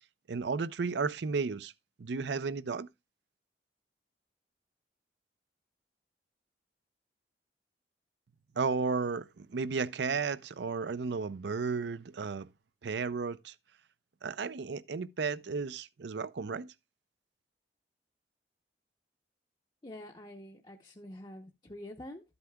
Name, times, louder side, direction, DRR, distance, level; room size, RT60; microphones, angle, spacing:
voice 1, 0.3-1.7 2.0-2.9 8.6-12.5 12.8-13.5 14.2-16.7, right 4 dB, 75° right, 0.5 m, -33 dB
voice 2, 19.8-22.2, left 1 dB, 25° left, 0.7 m, -46 dB
12.5 x 8.0 x 2.2 m
head